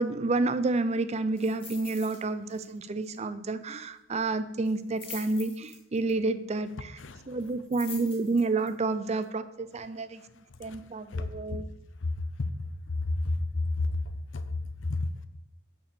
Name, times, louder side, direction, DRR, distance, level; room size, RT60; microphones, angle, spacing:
voice 1, 0.0-7.0 7.3-10.2 10.6-11.7, right 3 dB, 35° right, 0.5 m, -29 dB
sound 1, 1.4-2.2 2.5-2.8 3.0-3.1 4.6-6.1 7.4-8.7 9.2-9.3, left 4 dB, 30° left, 2.0 m, -45 dB
voice 2, 12.9-14.0 14.3-14.5 14.8-15.1, left 2 dB, 70° left, 0.7 m, -30 dB
6.7 x 5.7 x 6.9 m
head